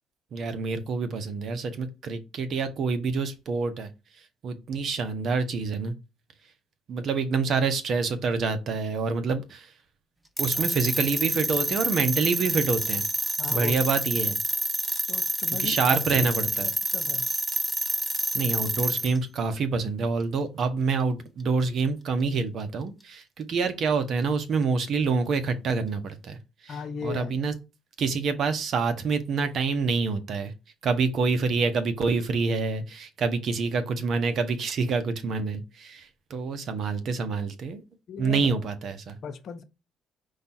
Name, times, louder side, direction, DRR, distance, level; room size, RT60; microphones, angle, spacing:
voice 1, 0.3-3.9 4.4-5.9 6.9-9.7 10.4-13.0 13.5-14.4 15.6-16.7 18.3-26.4 26.6-27.5 28.0-30.5 30.8-37.8 38.2-39.2, right 4 dB, 60° right, 0.8 m, -27 dB
sound 1, 10.4-19.2, right 1 dB, 10° right, 0.7 m, -28 dB
voice 2, 13.4-13.8 15.1-16.3 16.6-17.3 26.7-27.3 38.1-38.5 39.2-39.6, left 6 dB, 55° left, 0.6 m, -37 dB
4.9 x 2.4 x 4.2 m
supercardioid pair, 85°, 0 cm